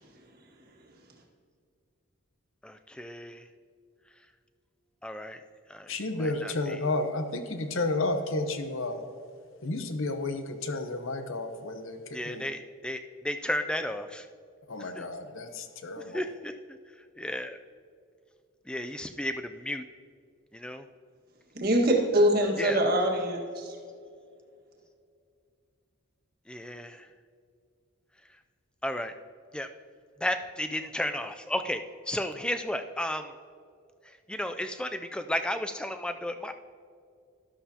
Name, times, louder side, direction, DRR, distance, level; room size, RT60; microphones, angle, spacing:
voice 1, 2.6-3.5 4.2-4.3 5.0-5.4 5.7-6.8 12.1-14.3 14.8-15.1 16.0-17.6 18.7-19.8 20.5-20.9 22.6-22.8 26.5-27.1 28.3-28.4 28.8-29.2 29.5-29.7 30.2-33.3 34.0-36.5, left 1 dB, 5° left, 8 dB, 0.3 m, -34 dB
voice 2, 5.9-9.0 9.6-12.0 12.3-12.4 14.7-16.2, left 2 dB, 65° left, 7 dB, 0.9 m, -31 dB
voice 3, 21.5-23.8, right 1 dB, 45° right, -1 dB, 1.7 m, -24 dB
12.5 x 12.0 x 2.9 m, 2.3 s
head